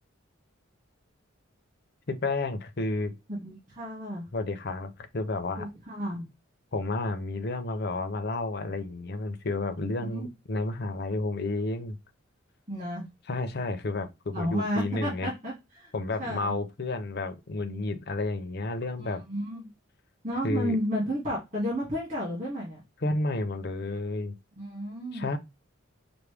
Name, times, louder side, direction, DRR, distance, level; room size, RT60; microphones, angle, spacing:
voice 1, 2.1-3.1 4.3-5.7 6.7-12.0 13.3-15.3 15.9-19.2 20.4-20.8 23.0-24.3 25.1-25.4, left 2 dB, 50° left, 0.6 m, -31 dB
voice 2, 3.3-4.2 5.6-6.3 10.0-10.3 12.7-13.1 14.3-15.9 16.2-16.6 19.0-19.7 20.2-22.8 24.6-25.3, equal, 40° right, 2.1 m, -32 dB
6.0 x 2.2 x 3.3 m
head